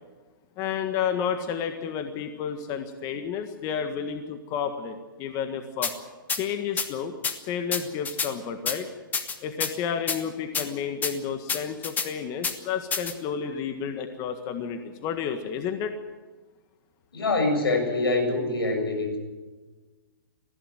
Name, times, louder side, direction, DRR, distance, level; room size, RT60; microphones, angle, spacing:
voice 1, 0.6-5.9 6.3-7.1 7.5-8.9 9.4-15.9, left 7 dB, 30° left, 7 dB, 1.7 m, -31 dB
sound 1, 5.8-5.9 6.3-6.4 6.8-6.9 7.2-7.3 7.7-8.3 8.7-8.8 9.1-9.7 10.1-10.2 10.5-10.7 11.0-11.1 11.5-12.1 12.4-12.5 12.9-13.1, left 6 dB, 15° left, 1.4 m, -27 dB
voice 2, 17.1-19.2, left 2 dB, 90° left, 4 dB, 7.2 m, -25 dB
20.0 x 15.5 x 9.2 m, 1.3 s
hypercardioid pair, 140°, 12 cm